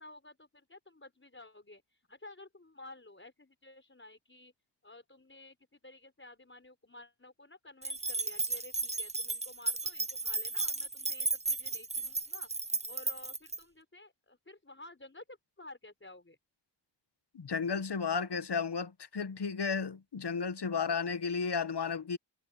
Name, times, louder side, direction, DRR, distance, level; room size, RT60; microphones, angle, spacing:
voice 1, 0.0-4.5 4.8-12.5 12.9-16.4, left 2 dB, 25° left, 5.0 m, -53 dB
sound 1, 7.8-13.6, right 2 dB, 15° right, 0.7 m, -34 dB
voice 2, 17.3-22.2, left 5 dB, 65° left, 1.2 m, -33 dB
wide cardioid pair, 85°, 44 cm